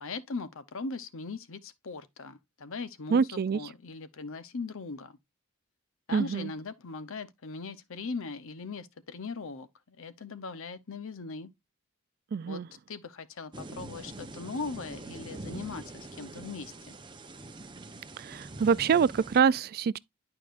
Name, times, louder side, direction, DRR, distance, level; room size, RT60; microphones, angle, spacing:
voice 1, 0.0-5.2 6.1-11.5 12.5-12.6 12.9-17.0, left 4 dB, 65° left, 0.8 m, -39 dB
voice 2, 3.1-3.6 6.1-6.5 12.3-12.6 18.2-20.0, right 6 dB, 45° right, 0.3 m, -25 dB
sound 1, 13.5-19.4, right 2 dB, 20° right, 0.8 m, -44 dB
11.5 x 4.8 x 2.5 m
head